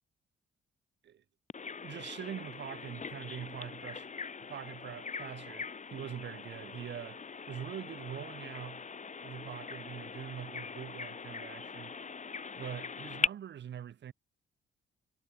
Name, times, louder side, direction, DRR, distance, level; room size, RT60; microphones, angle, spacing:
Bird vocalization bird call bird song, 1.5-13.3, left 5 dB, 35° left, 7.7 m, -41 dB
voice 1, 1.8-4.1 4.5-8.9 9.2-11.9 12.5-14.1, right 9 dB, 65° right, 6.6 m, -44 dB
cardioid pair, 90°, 20 cm